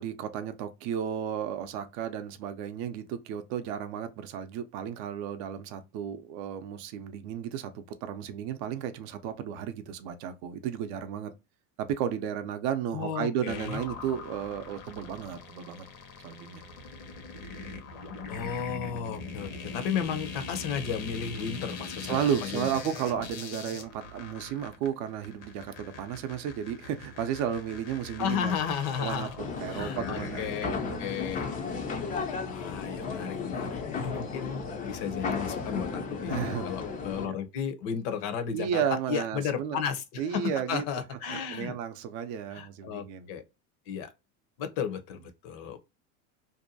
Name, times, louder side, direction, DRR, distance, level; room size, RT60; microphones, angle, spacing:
voice 1, 0.0-11.3 11.8-15.9 16.2-16.6 22.0-28.5 29.0-31.0 36.3-36.7 37.2-37.4 38.5-39.8 40.2-40.8 41.3-43.3, right 9 dB, 55° right, 0.5 m, -33 dB
voice 2, 12.9-13.8 18.3-22.8 28.2-29.3 29.7-31.5 32.5-38.8 39.1-41.7 42.5-43.4 43.9-44.1 44.6-45.8, left 7 dB, 55° left, 0.7 m, -34 dB
sound 1, 13.4-30.9, left 4 dB, 80° left, 1.0 m, -42 dB
sound 2, 29.4-37.3, left 5 dB, 20° left, 0.4 m, -34 dB
2.7 x 2.2 x 2.6 m
supercardioid pair, 125°, 41 cm